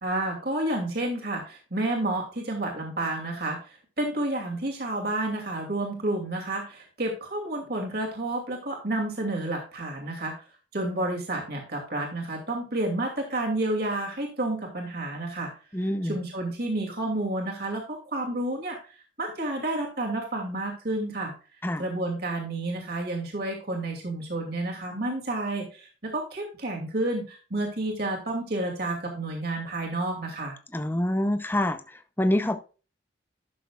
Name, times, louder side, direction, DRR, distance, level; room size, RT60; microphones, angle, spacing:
voice 1, 0.0-10.3 10.7-15.5 16.0-18.8 19.2-21.3 21.8-30.5, right 2 dB, 55° right, 1 dB, 2.5 m, -30 dB
voice 2, 15.7-16.2 21.6-21.8 30.7-32.6, left 1 dB, 10° left, 8 dB, 0.7 m, -26 dB
12.0 x 6.8 x 2.4 m, 0.35 s
head